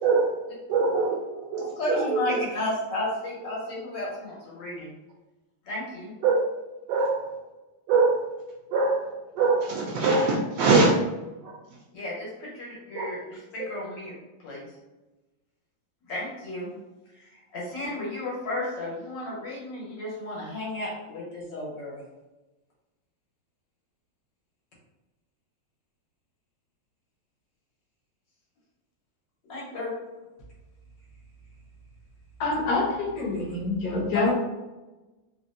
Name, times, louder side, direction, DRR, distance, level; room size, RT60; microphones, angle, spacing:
voice 1, 0.0-0.4 0.7-2.4 6.2-6.3 6.9-7.3 7.9-8.3 8.7-11.0 11.4-11.6 12.9-13.1 13.6-13.7, right 4 dB, 75° right, -2 dB, 1.2 m, -23 dB
voice 2, 1.8-4.9 5.6-6.1 11.9-14.7 16.1-16.7 17.2-22.0 29.5-29.9 34.1-34.3, left 1 dB, 90° left, -5 dB, 1.8 m, -33 dB
voice 3, 32.4-34.3, left 3 dB, 60° left, -3 dB, 1.1 m, -26 dB
3.6 x 2.1 x 2.5 m, 1.1 s
omnidirectional pair, 2.0 m